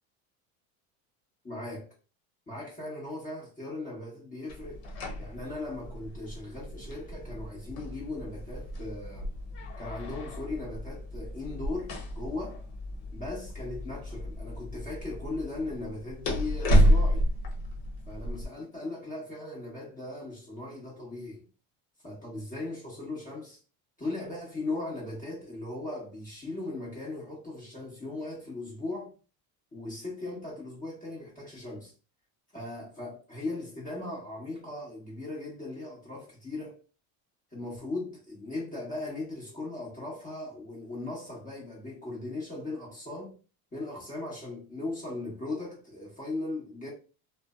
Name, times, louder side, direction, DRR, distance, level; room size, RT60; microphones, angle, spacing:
voice 1, 1.4-1.9 2.5-4.8 5.2-9.3 9.8-12.6 13.1-17.3 18.1-21.5 22.0-23.6 24.0-29.1 29.7-31.9 32.5-36.8 37.5-43.4 43.7-46.9, left 2 dB, 20° left, 1.0 m, -38 dB
sound 1, 4.5-18.4, equal, 70° left, 1.0 m, -31 dB
2.5 x 2.1 x 2.3 m
supercardioid pair, 100°, 42 cm